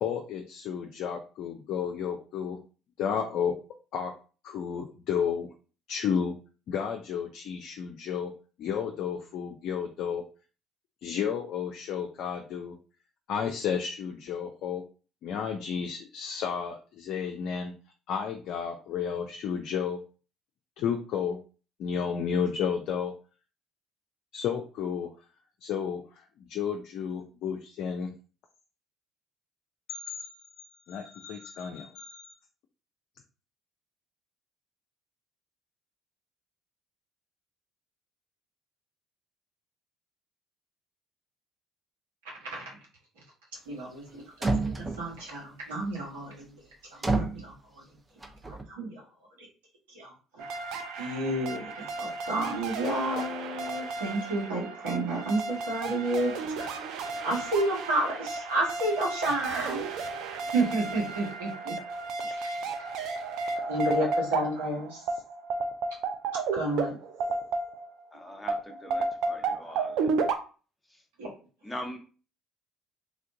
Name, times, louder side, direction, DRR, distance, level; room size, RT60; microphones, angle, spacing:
voice 1, 0.0-2.6 3.0-3.6 3.9-4.1 4.4-5.5 5.9-6.4 6.7-8.3 8.6-10.2 11.0-12.8 13.3-14.8 15.2-17.7 18.1-20.0 20.8-21.4 21.8-23.1 24.3-25.1 25.6-26.0 26.4-28.1 29.9-32.3, left 7 dB, 65° left, 3 dB, 0.3 m, -32 dB
voice 2, 42.4-42.8 43.7-46.4 46.9-47.8 48.5-49.0 49.9-50.1 51.0-56.8 57.2-59.9 60.5-61.7 62.2-62.6 63.7-65.0 66.5-66.9 71.2-71.3, right 1 dB, 80° right, -3 dB, 1.2 m, -31 dB
sound 1, 44.1-44.2 44.4-45.2 47.0-47.5 48.2-48.6, right 3 dB, 20° right, 0.6 m, -28 dB
sound 2, 50.4-68.0 68.5-70.4, right 4 dB, 65° right, 0.4 m, -33 dB
voice 3, 68.1-70.1 71.6-72.0, left 1 dB, 10° left, 3 dB, 0.8 m, -41 dB
3.3 x 2.5 x 2.6 m, 0.36 s
hypercardioid pair, 55°, 0 cm